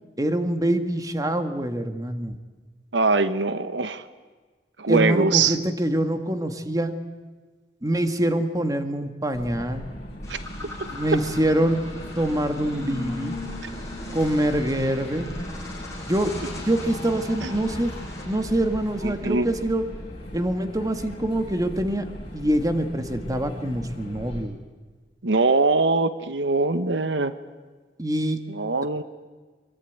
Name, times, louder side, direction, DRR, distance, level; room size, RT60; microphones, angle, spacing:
voice 1, 0.2-2.4 4.9-6.9 7.8-9.9 10.9-11.8 12.2-13.3 14.1-15.3 16.0-16.3 16.6-17.9 18.3-19.8 20.3-22.1 22.3-24.6 28.0-28.4, right 1 dB, 20° right, 7 dB, 1.7 m, -25 dB
voice 2, 2.9-4.0 4.8-5.6 10.3-10.4 17.4-17.5 19.0-19.5 25.2-27.3 28.5-29.0, right 3 dB, 90° right, 12 dB, 1.2 m, -22 dB
sound 1, 9.3-24.4, equal, 35° left, 7.8 m, -39 dB
sound 2, 10.2-19.8, left 2 dB, 15° left, 7.9 m, -38 dB
24.5 x 23.0 x 9.4 m, 1.4 s
head